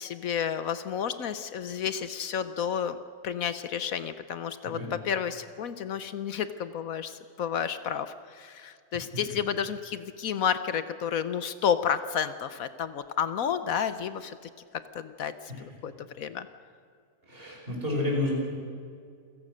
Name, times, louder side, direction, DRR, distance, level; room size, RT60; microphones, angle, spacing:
voice 1, 0.0-3.0 3.2-14.4 14.7-16.5, left 8 dB, 70° left, 12 dB, 1.2 m, -31 dB
voice 2, 17.3-18.3, left 2 dB, 40° right, -1 dB, 5.8 m, -30 dB
28.5 x 16.5 x 6.4 m, 2.2 s
omnidirectional pair, 1.6 m